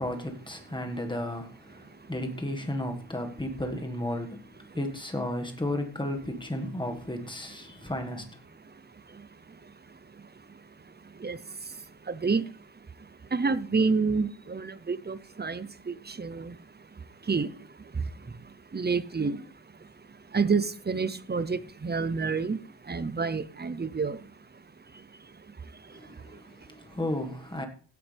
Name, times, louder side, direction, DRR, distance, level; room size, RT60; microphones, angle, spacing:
voice 1, 0.0-4.5 4.7-8.3 26.0-27.7, left 1 dB, 10° left, 1.6 m, -34 dB
voice 2, 12.1-12.4 13.3-16.5 17.3-17.5 18.7-19.4 20.3-22.6 22.9-24.2, right 4 dB, 20° right, 0.6 m, -28 dB
16.0 x 9.6 x 3.4 m
wide cardioid pair, 115°, 46 cm